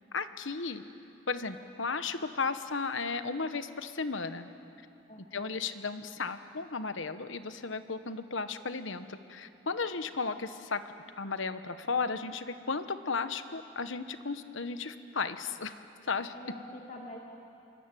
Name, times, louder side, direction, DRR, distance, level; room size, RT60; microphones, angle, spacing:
voice 1, 0.1-0.8 1.3-4.5 5.3-10.8 11.2-16.3, left 4 dB, 75° left, 10 dB, 1.2 m, -34 dB
voice 2, 5.1-5.5 16.3-17.2, left 1 dB, 40° left, -1 dB, 2.4 m, -46 dB
27.0 x 23.0 x 9.2 m, 2.8 s
head